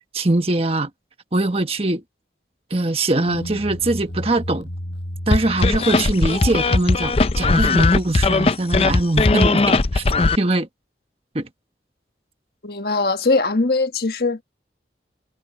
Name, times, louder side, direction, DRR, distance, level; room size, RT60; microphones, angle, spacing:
voice 1, 0.1-0.9 1.3-2.0 2.7-4.7 5.3-10.0 10.4-10.7 11.3-11.5, right 2 dB, 35° right, 1.4 m, -22 dB
sound 1, 3.3-7.5, equal, 85° left, 6.0 m, -34 dB
sound 2, 5.3-10.4, left 3 dB, 35° left, 0.5 m, -18 dB
voice 2, 12.6-14.4, left 3 dB, 60° left, 1.5 m, -20 dB
head